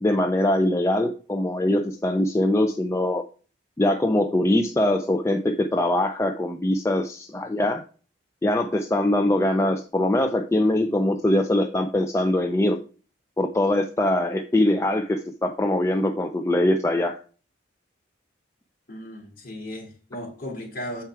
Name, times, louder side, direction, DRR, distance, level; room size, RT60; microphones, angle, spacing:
voice 1, 0.0-3.2 3.8-7.8 8.4-12.8 13.4-17.2, left 1 dB, 15° left, 0.3 m, -22 dB
voice 2, 18.9-21.0, left 1 dB, 45° left, 2.4 m, -36 dB
7.4 x 4.5 x 4.6 m
head